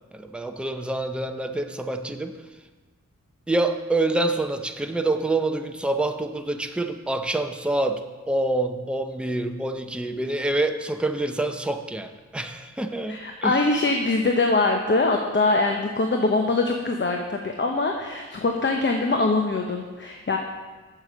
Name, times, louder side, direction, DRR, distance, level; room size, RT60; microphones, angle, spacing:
voice 1, 0.1-2.4 3.5-13.7, right 2 dB, 5° right, 6 dB, 0.6 m, -26 dB
voice 2, 13.1-20.4, left 3 dB, 40° left, 2 dB, 0.8 m, -23 dB
7.8 x 6.7 x 6.1 m, 1.3 s
wide cardioid pair, 100°, 29 cm